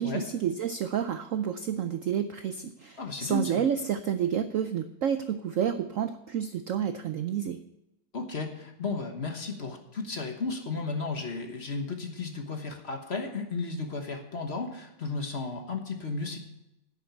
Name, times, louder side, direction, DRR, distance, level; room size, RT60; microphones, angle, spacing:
voice 1, 0.0-7.6, right 8 dB, 85° right, 9 dB, 0.7 m, -30 dB
voice 2, 3.0-3.6 8.1-16.4, left 3 dB, 40° left, 4 dB, 1.3 m, -34 dB
10.0 x 7.1 x 8.1 m, 0.90 s
omnidirectional pair, 2.1 m